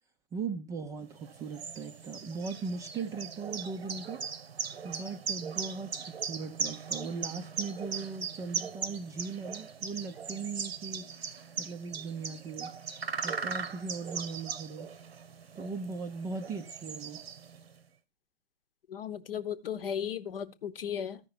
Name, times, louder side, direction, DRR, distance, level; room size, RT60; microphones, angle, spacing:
voice 1, 0.3-4.2 4.8-11.1 11.6-12.7 13.2-14.9 15.6-17.2, right 4 dB, 10° right, 0.4 m, -39 dB
sound 1, 1.2-17.7, right 6 dB, 75° right, 0.9 m, -39 dB
voice 2, 18.9-21.2, left 8 dB, 65° left, 0.9 m, -36 dB
13.5 x 5.5 x 4.1 m
figure-of-eight pair, 115°, 31 cm